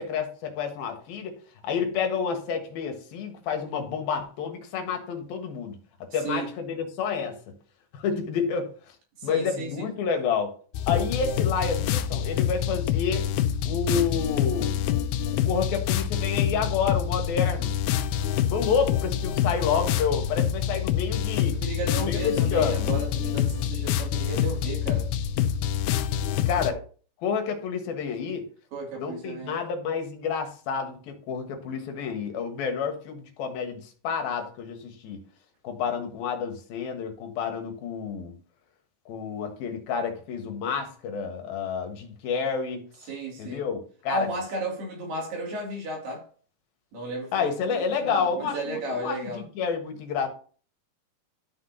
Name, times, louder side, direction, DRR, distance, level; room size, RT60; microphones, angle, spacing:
voice 1, 0.0-1.4 1.6-5.8 6.1-7.4 7.9-8.7 9.2-10.5 10.9-13.3 13.6-14.8 15.5-17.7 18.5-21.6 22.1-22.9 26.4-26.8 27.2-28.4 29.0-35.2 35.6-38.3 39.1-42.8 43.4-44.3 47.3-50.3, left 6 dB, 70° left, 3.1 m, -29 dB
voice 2, 9.2-9.9 21.5-25.1 26.7-26.8 28.7-29.6 43.1-43.6 44.1-46.2 46.9-49.4, right 2 dB, 70° right, 4.7 m, -34 dB
sound 1, 10.7-26.7, left 10 dB, 85° left, 2.7 m, -26 dB
12.5 x 6.0 x 2.9 m
omnidirectional pair, 4.7 m